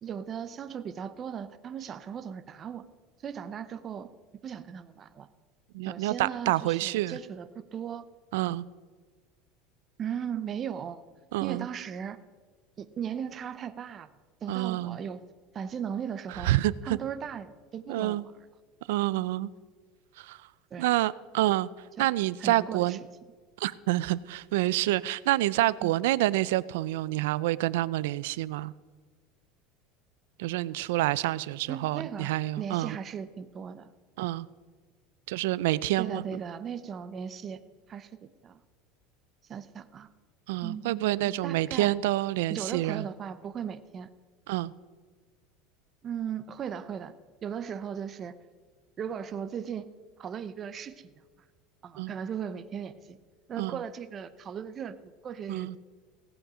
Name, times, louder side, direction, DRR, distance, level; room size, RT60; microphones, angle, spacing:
voice 1, 0.0-2.9 3.2-4.1 4.4-5.3 5.8-8.0 10.0-11.0 11.4-12.2 12.8-14.1 14.4-15.2 15.5-16.5 16.8-18.2 20.7-20.9 22.0-22.1 22.4-23.0 25.8-25.9 31.7-33.9 36.0-37.6 37.9-38.6 39.5-40.1 40.6-41.9 42.5-44.1 46.0-47.1 47.4-48.3 49.0-49.9 50.2-51.1 51.8-53.2 53.5-54.9 55.2-55.8, right 8 dB, 25° right, 12 dB, 0.6 m, -37 dB
voice 2, 5.7-7.2 8.3-8.6 11.3-11.7 14.5-15.0 16.4-17.0 17.9-18.3 18.9-19.5 20.2-20.4 20.8-21.7 22.0-23.0 23.6-28.7 30.4-33.0 34.2-34.5 35.3-36.2 40.5-43.1 44.5-44.7 52.0-52.1 53.6-53.8 55.5-55.8, right 16 dB, 90° right, 19 dB, 0.4 m, -28 dB
17.0 x 7.8 x 4.9 m, 1.5 s
cardioid pair, 165°, 0 cm